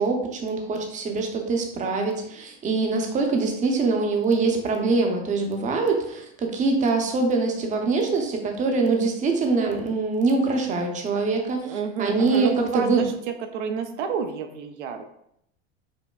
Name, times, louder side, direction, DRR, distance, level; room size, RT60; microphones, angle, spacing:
voice 1, 0.0-11.7 12.0-13.1, right 3 dB, 20° right, 3 dB, 0.6 m, -24 dB
voice 2, 11.6-13.1 13.5-15.0, right 6 dB, 85° right, 6 dB, 0.6 m, -29 dB
5.3 x 2.1 x 2.3 m, 0.74 s
hypercardioid pair, 105°, 34 cm